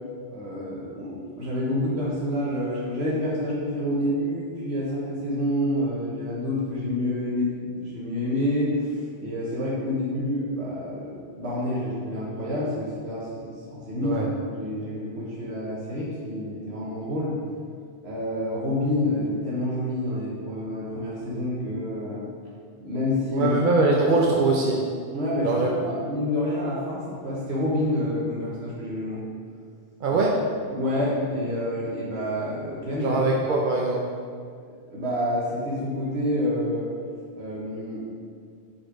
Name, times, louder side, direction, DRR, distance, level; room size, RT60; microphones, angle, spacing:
voice 1, 0.3-14.2 14.5-17.3 18.0-22.3 22.8-23.5 25.1-29.2 30.1-30.2 30.7-33.2 34.9-36.9 37.4-38.0, left 1 dB, 75° right, -7 dB, 1.6 m, -28 dB
voice 2, 23.3-24.8 25.4-25.7 30.0-30.3 33.0-34.0, right 3 dB, 55° right, -1 dB, 0.7 m, -22 dB
7.8 x 4.4 x 5.0 m, 2.2 s
omnidirectional pair, 1.1 m